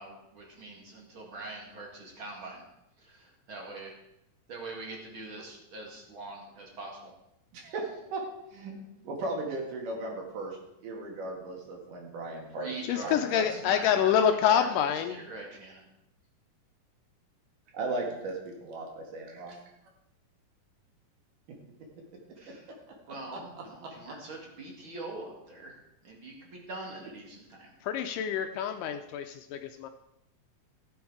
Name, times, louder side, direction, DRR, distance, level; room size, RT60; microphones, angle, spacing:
voice 1, 0.0-2.6 3.5-3.9 4.5-7.1 7.6-7.7 12.5-15.9 22.4-22.7 23.1-25.8 26.0-27.7, right 2 dB, 40° right, 0 dB, 2.3 m, -43 dB
voice 2, 7.5-8.2 8.5-8.7 9.0-13.6 17.7-19.6 23.1-23.2 23.5-23.6, right 2 dB, 65° right, 0 dB, 3.4 m, -37 dB
voice 3, 12.9-15.2 27.8-29.9, left 9 dB, 80° left, 7 dB, 2.0 m, -27 dB
15.5 x 7.1 x 4.7 m, 0.86 s
omnidirectional pair, 4.1 m